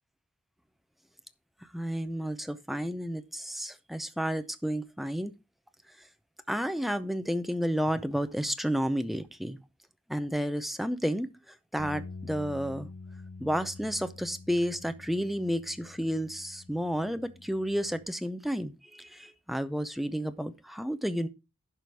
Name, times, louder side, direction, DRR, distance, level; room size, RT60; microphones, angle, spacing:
voice 1, 1.7-5.3 6.5-9.6 10.1-11.3 11.7-12.9 13.4-21.3, equal, ahead, 0.6 m, -31 dB
sound 1, 11.8-18.0, left 3 dB, 50° left, 1.8 m, -46 dB
11.0 x 5.0 x 4.6 m
head